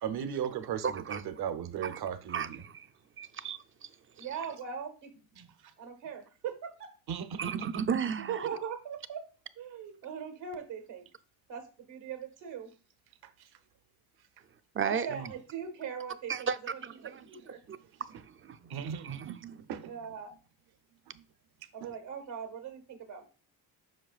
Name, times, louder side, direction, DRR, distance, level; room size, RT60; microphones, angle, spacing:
voice 1, 0.0-2.6 5.4-5.5 7.1-7.5 15.1-15.3 18.7-19.9 21.1-21.2 21.8-21.9, right 8 dB, 65° right, 0.9 m, -37 dB
voice 2, 0.8-1.2 1.8-2.0 2.3-2.9 3.2-3.6 4.2-4.3 7.4-8.5 14.7-15.1 16.3-17.8 18.1-18.6 19.0-19.6, right 7 dB, 30° right, 0.5 m, -35 dB
voice 3, 4.2-5.1 5.8-6.9 8.3-9.2 9.6-11.1 11.5-12.7 14.8-17.6 19.9-20.3 21.7-23.2, right 7 dB, 80° right, 1.6 m, -40 dB
7.8 x 5.5 x 2.4 m
cardioid pair, 85°, 42 cm